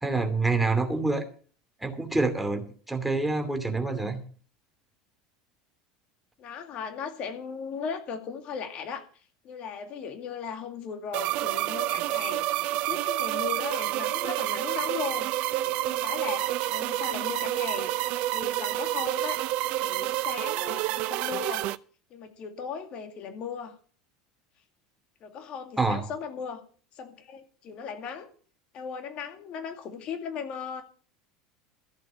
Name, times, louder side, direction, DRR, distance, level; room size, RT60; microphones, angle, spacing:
voice 1, 0.0-1.2 1.8-4.2 25.8-26.0, right 3 dB, 5° right, 6 dB, 2.6 m, -27 dB
voice 2, 6.4-9.0 9.4-12.5 12.8-15.3 15.6-21.7 22.1-23.8 25.2-26.6 26.9-28.3 28.7-30.8, left 6 dB, 45° left, 6 dB, 2.3 m, -37 dB
sound 1, 11.1-21.8, right 15 dB, 55° right, 0.6 m, -29 dB
14.5 x 7.6 x 7.0 m, 0.42 s
hypercardioid pair, 75°, 2 cm